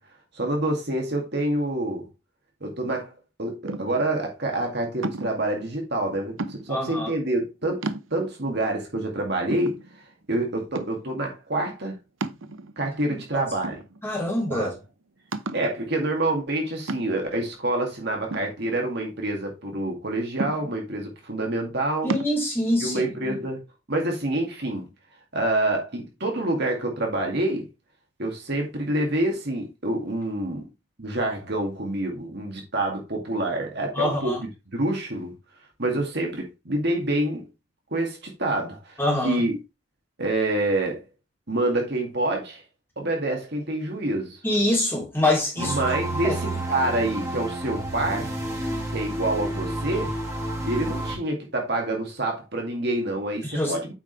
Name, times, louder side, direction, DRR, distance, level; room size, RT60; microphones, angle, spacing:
voice 1, 0.3-2.1 2.6-3.1 3.4-7.8 8.1-9.8 10.3-12.0 12.8-13.8 14.5-14.7 15.5-22.1 22.8-23.6 23.9-24.9 25.3-27.7 28.2-30.6 31.0-35.3 35.8-37.5 37.9-39.6 40.2-41.0 41.5-42.6 43.0-44.4 45.6-48.3 48.9-50.1 50.6-53.9, right 1 dB, 50° right, 2.2 m, -27 dB
sound 1, 3.6-4.1 5.0-5.5 6.4-6.9 7.4-7.5 7.8-8.5 9.0-9.1 9.5-10.3 10.7-11.2 12.2-12.9 13.6-14.3 14.6-14.7 15.3-15.7 16.9-17.4 18.3-19.2 20.4-21.0 22.1-22.4, right 2 dB, 70° right, 0.7 m, -33 dB
voice 2, 6.7-7.1 13.3-13.4 14.0-14.7 22.0-23.4 33.9-34.4 39.0-39.4 44.4-45.8 46.2-46.3 53.4-53.7, left 1 dB, 10° left, 3.0 m, -25 dB
sound 2, 45.6-51.2, right 1 dB, 15° right, 2.3 m, -30 dB
8.4 x 5.1 x 3.3 m
head